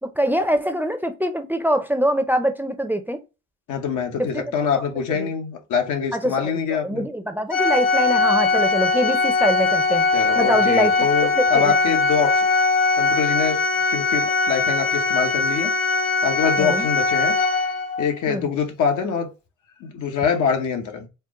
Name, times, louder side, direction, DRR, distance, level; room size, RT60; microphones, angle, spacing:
voice 1, 0.0-3.2 4.2-4.4 5.2-5.3 6.1-10.1 10.4-11.7 16.6-16.9 18.3-18.5, equal, 5° right, 0.5 m, -24 dB
voice 2, 3.7-7.1 10.1-12.5 13.0-15.7 16.2-17.4 18.0-19.3 19.8-21.1, left 6 dB, 80° left, 1.0 m, -24 dB
Organ, 7.5-18.1, left 3 dB, 60° left, 1.7 m, -20 dB
4.5 x 2.1 x 3.5 m
cardioid pair, 90°, 30 cm